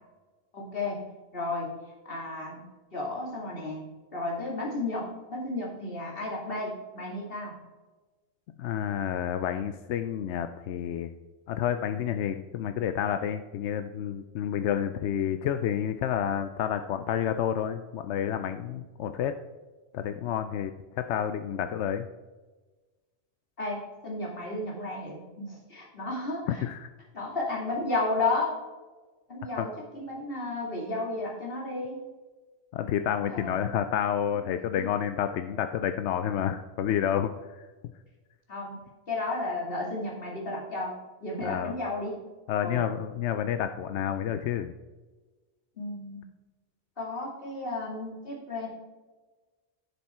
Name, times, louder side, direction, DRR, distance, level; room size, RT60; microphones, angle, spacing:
voice 1, 0.5-1.7 2.0-2.7 2.9-7.5 23.6-26.6 27.1-28.6 29.3-32.0 33.3-33.7 34.7-34.9 38.5-42.2 42.6-42.9 45.8-46.3 47.0-48.7, left 2 dB, 55° left, -2 dB, 2.6 m, -33 dB
voice 2, 8.6-11.2 11.5-19.3 19.9-20.7 21.0-22.0 26.6-26.9 29.6-29.7 32.7-37.7 41.4-41.7 42.5-44.7, left 9 dB, 85° left, 9 dB, 0.9 m, -29 dB
11.0 x 7.2 x 4.3 m, 1.3 s
omnidirectional pair, 1.1 m